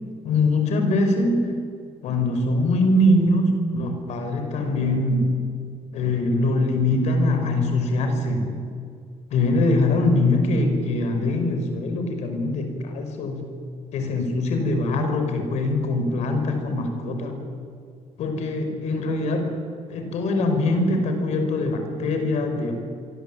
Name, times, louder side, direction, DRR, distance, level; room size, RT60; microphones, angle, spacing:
voice 1, 0.2-1.5 2.0-5.4 5.9-8.5 9.3-13.5 13.9-17.4 18.2-19.5 19.9-22.7, left 2 dB, 65° left, 6 dB, 5.6 m, -22 dB
26.5 x 24.0 x 8.9 m, 2.2 s
cardioid pair, 180°, 12 cm